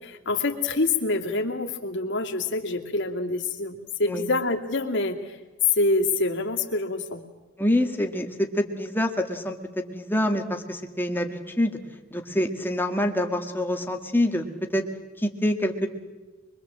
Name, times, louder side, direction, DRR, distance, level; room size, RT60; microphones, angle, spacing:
voice 1, 0.0-5.4 5.7-7.2, left 2 dB, 60° left, 1 dB, 2.5 m, -26 dB
voice 2, 7.6-11.8 12.1-14.5 14.7-14.9 15.2-15.9, left 1 dB, 10° left, 4 dB, 1.8 m, -26 dB
24.0 x 22.5 x 7.6 m, 1.2 s
head